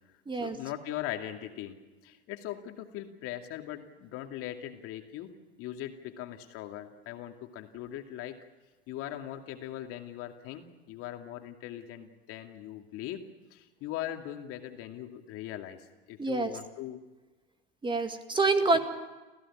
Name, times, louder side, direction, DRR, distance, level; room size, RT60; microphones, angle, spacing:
voice 1, 0.4-1.8 2.0-5.3 5.6-8.4 8.9-13.2 13.5-17.0, left 12 dB, 50° left, 5 dB, 2.5 m, -40 dB
voice 2, 16.2-16.5 17.8-18.8, right 3 dB, 15° right, 7 dB, 2.0 m, -26 dB
29.0 x 15.5 x 8.7 m, 1.2 s
hypercardioid pair, 85°, 30 cm